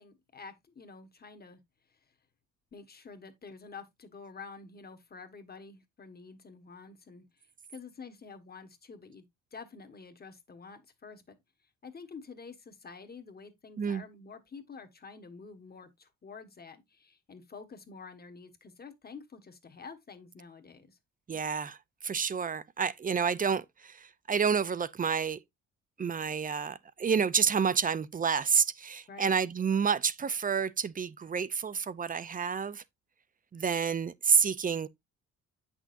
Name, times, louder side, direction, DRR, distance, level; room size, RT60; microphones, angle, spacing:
voice 1, 0.0-1.6 2.7-7.2 7.7-9.2 9.5-11.4 11.8-21.0 29.1-29.3, left 5 dB, 30° left, 1.3 m, -48 dB
voice 2, 21.3-21.8 22.0-25.4 26.0-32.8 33.5-34.9, right 6 dB, 30° right, 0.5 m, -29 dB
8.0 x 6.2 x 2.5 m
cardioid pair, 90°, 30 cm